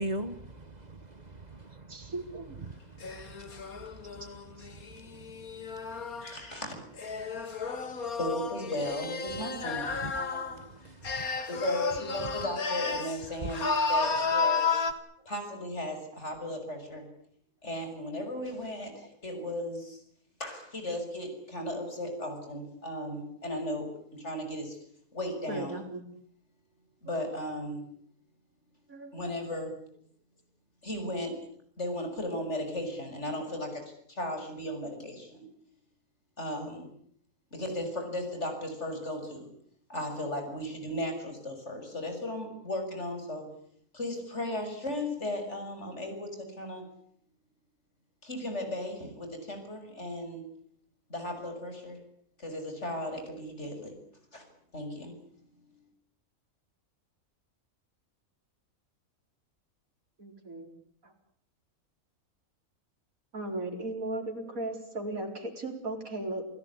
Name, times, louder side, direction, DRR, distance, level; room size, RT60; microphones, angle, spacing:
voice 1, 0.0-2.1 2.6-4.1 5.6-5.7 7.8-7.9 10.0-10.1 10.8-11.3 13.4-13.5, right 2 dB, 30° right, 1.3 m, -40 dB
voice 2, 1.9-2.6 4.6-4.7 10.4-10.5 18.9-19.1 25.5-26.0 28.9-29.1 60.2-60.7 61.0-61.1 63.3-66.5, right 2 dB, 75° right, 5.0 m, -37 dB
sound 1, 3.0-6.4 7.0-10.6 11.0-13.2 13.5-14.9, left 4 dB, 80° left, 2.4 m, -32 dB
voice 3, 6.2-6.7 8.2-10.6 11.5-14.7 15.2-17.1 17.6-20.0 20.4-24.8 25.1-25.8 27.0-27.8 29.1-29.7 30.8-31.4 31.8-35.4 36.4-36.9 37.5-39.5 39.9-43.5 43.9-46.9 48.2-50.4 51.1-52.0 52.4-53.9 54.3-54.4 54.7-55.1, left 1 dB, 50° left, 6.7 m, -36 dB
29.0 x 17.0 x 9.8 m
omnidirectional pair, 1.5 m